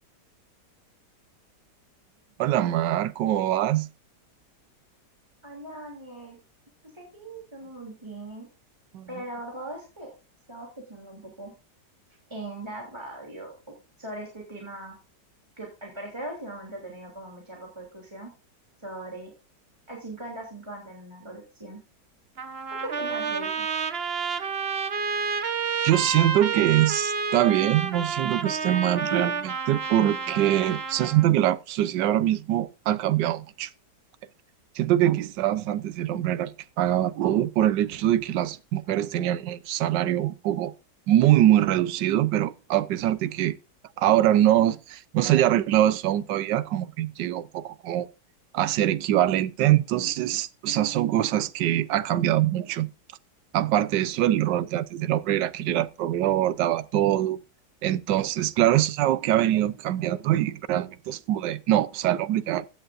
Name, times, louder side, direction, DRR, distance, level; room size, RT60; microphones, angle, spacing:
voice 1, 2.4-3.9 8.9-9.1 25.8-33.7 34.7-40.7 41.1-43.5 44.0-48.1 48.5-52.9 53.5-57.4 57.8-62.7, right 12 dB, 85° right, 1.4 m, -23 dB
voice 2, 5.4-6.4 6.8-8.5 9.1-10.1 10.5-11.5 12.3-13.5 14.0-15.0 15.6-18.3 18.8-19.3 19.9-21.8 22.7-23.7, right 1 dB, 15° right, 3.2 m, -40 dB
Trumpet, 22.4-31.3, right 5 dB, 40° right, 1.1 m, -30 dB
15.5 x 10.5 x 2.6 m
omnidirectional pair, 1.9 m